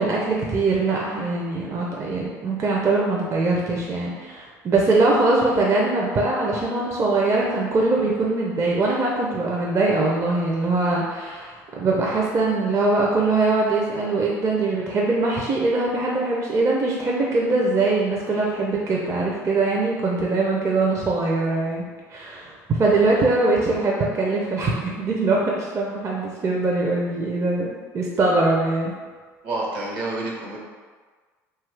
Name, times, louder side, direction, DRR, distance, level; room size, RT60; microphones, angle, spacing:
voice 1, 0.0-21.8 22.1-28.9, right 3 dB, 35° right, -3 dB, 0.5 m, -22 dB
voice 2, 29.4-30.6, right 2 dB, 65° right, -3 dB, 0.9 m, -28 dB
2.7 x 2.3 x 3.2 m, 1.5 s
hypercardioid pair, 70°, 9 cm